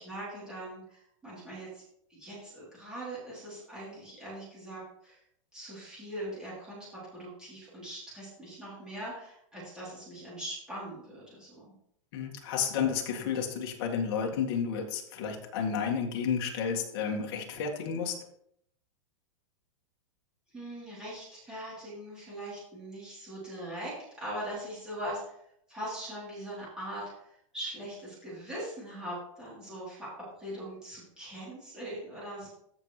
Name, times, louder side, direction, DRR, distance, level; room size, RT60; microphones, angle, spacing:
voice 1, 0.0-1.8 2.1-5.2 5.5-11.7 20.5-25.3 25.7-30.1 30.4-32.5, right 1 dB, 5° right, -9 dB, 3.3 m, -41 dB
voice 2, 12.1-18.2, left 7 dB, 45° left, 1 dB, 1.8 m, -31 dB
14.0 x 5.5 x 3.2 m, 0.71 s
supercardioid pair, 170°, 17 cm